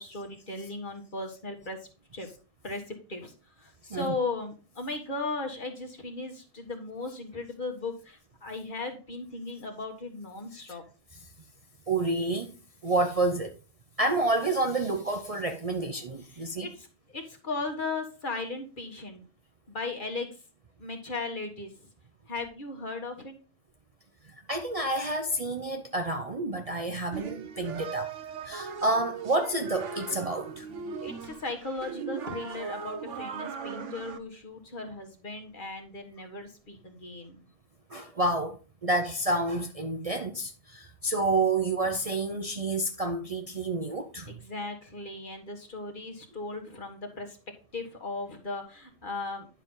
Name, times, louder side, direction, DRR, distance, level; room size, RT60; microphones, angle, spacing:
voice 1, 0.0-1.8 2.1-2.3 2.6-3.3 3.6-10.8 16.3-19.2 19.7-20.3 20.8-21.7 22.3-23.3 31.0-37.5 44.3-47.4 47.7-49.5, left 3 dB, 45° left, 1.6 m, -37 dB
voice 2, 11.9-12.6 12.8-13.5 14.0-16.7 24.5-28.1 28.4-30.7 37.9-44.3, right 2 dB, 35° right, 0.7 m, -29 dB
sound 1, 27.1-34.2, right 6 dB, 80° right, 1.2 m, -38 dB
10.0 x 5.7 x 3.8 m
omnidirectional pair, 1.2 m